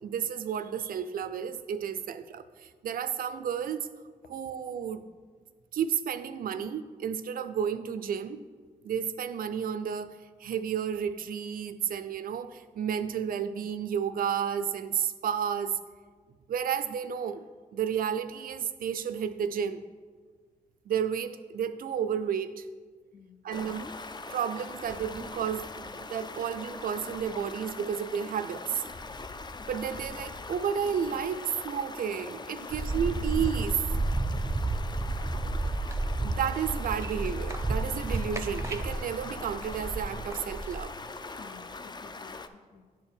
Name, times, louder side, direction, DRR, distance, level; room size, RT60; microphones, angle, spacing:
voice 1, 0.0-3.9 4.3-5.1 5.7-8.4 8.8-15.8 16.5-17.4 17.7-19.8 20.9-22.6 23.4-23.9 24.3-28.8 29.7-33.8 36.2-40.9, right 8 dB, 70° right, 12 dB, 0.4 m, -32 dB
voice 2, 23.1-23.4 32.6-33.2 36.2-36.4 41.4-42.9, left 6 dB, 85° left, 8 dB, 0.6 m, -53 dB
Stream, 23.5-42.5, left 3 dB, 30° left, 0.5 m, -42 dB
sound 1, 32.7-40.8, right 2 dB, 20° right, 0.6 m, -31 dB
10.0 x 4.5 x 3.5 m, 1.5 s
cardioid pair, 55°, 15 cm